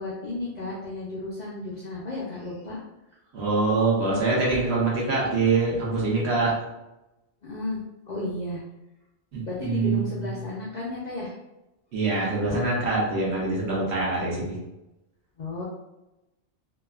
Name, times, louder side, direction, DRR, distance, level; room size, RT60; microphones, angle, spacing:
voice 1, 0.0-2.8 7.4-7.8 8.1-8.6 9.4-11.4 12.5-12.6 15.4-15.6, left 2 dB, 60° left, -5 dB, 0.4 m, -33 dB
voice 2, 3.3-6.5 9.3-10.5 11.9-14.6, right 3 dB, 65° right, -4 dB, 1.0 m, -24 dB
2.8 x 2.3 x 2.3 m, 0.95 s
omnidirectional pair, 1.2 m